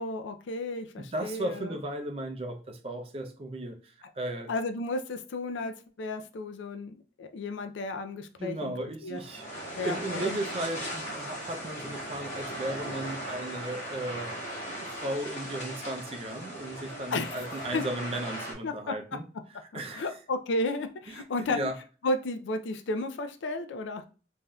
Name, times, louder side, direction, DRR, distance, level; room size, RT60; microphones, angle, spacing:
voice 1, 0.0-1.8 4.5-8.7 9.0-9.2 9.8-10.4 17.1-17.4 17.7-17.8 18.6-18.7 19.9-21.6 22.0-24.1, left 2 dB, 90° left, 0.4 m, -33 dB
voice 2, 1.0-4.5 8.4-14.3 14.7-19.2 19.7-20.1 21.1-21.8, right 1 dB, 30° right, 0.4 m, -36 dB
sound 1, 9.1-18.5, equal, 40° left, 1.3 m, -38 dB
3.3 x 2.6 x 2.2 m
head